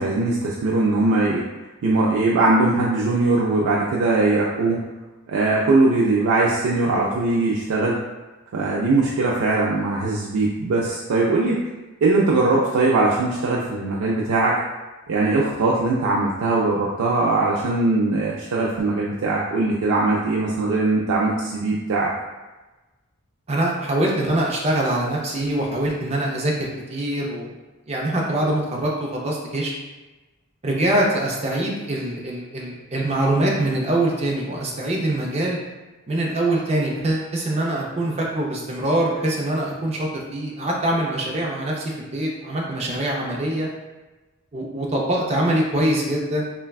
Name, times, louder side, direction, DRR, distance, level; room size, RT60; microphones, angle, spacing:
voice 1, 0.0-1.5 1.8-4.8 5.3-8.0 8.5-11.6 12.0-14.6 15.1-22.1, right 2 dB, 90° right, -4 dB, 0.4 m, -20 dB
voice 2, 23.5-27.5 27.9-29.7 30.6-35.6 36.1-43.7 44.5-46.4, right 1 dB, 30° right, -2 dB, 0.5 m, -23 dB
3.3 x 2.2 x 2.3 m, 1.1 s
head